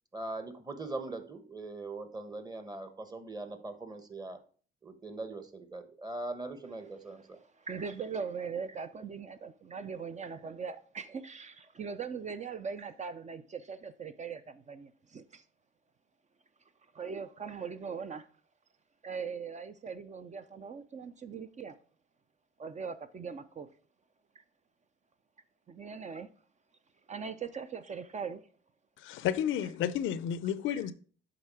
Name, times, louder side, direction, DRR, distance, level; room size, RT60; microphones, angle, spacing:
voice 1, 0.1-4.4 4.8-7.4, right 2 dB, 20° right, 1.1 m, -41 dB
voice 2, 7.1-15.4 16.9-18.3 19.0-21.8 22.6-23.7 25.7-26.3 27.1-28.4 30.7-30.8, right 6 dB, 35° right, 0.5 m, -40 dB
voice 3, 29.0-30.9, left 10 dB, 80° left, 0.5 m, -31 dB
7.8 x 3.8 x 4.8 m
cardioid pair, 90°, 20 cm